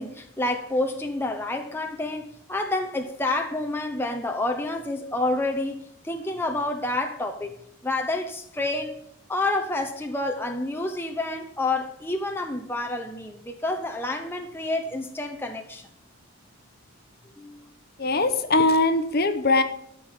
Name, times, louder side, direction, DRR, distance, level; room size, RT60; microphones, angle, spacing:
voice 1, 0.0-7.6 7.8-9.0 9.3-15.8 17.4-17.7, left 2 dB, 10° left, 0.8 m, -29 dB
voice 2, 18.0-19.6, left 2 dB, 45° left, 0.9 m, -21 dB
13.0 x 5.4 x 7.4 m
head